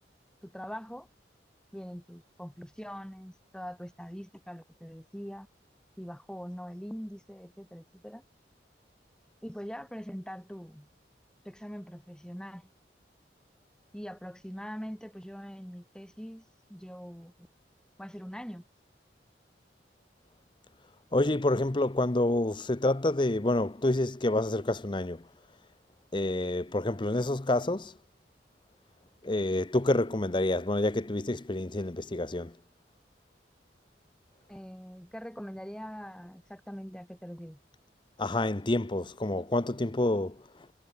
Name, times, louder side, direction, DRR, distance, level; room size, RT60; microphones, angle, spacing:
voice 1, 0.4-1.1 1.7-5.5 6.0-8.2 9.4-10.9 11.4-12.7 13.9-17.3 18.0-18.6 34.5-37.6, equal, 5° left, 4.9 m, -42 dB
voice 2, 21.1-25.3 26.1-28.0 29.2-32.6 38.2-40.5, left 2 dB, 25° left, 0.7 m, -28 dB
head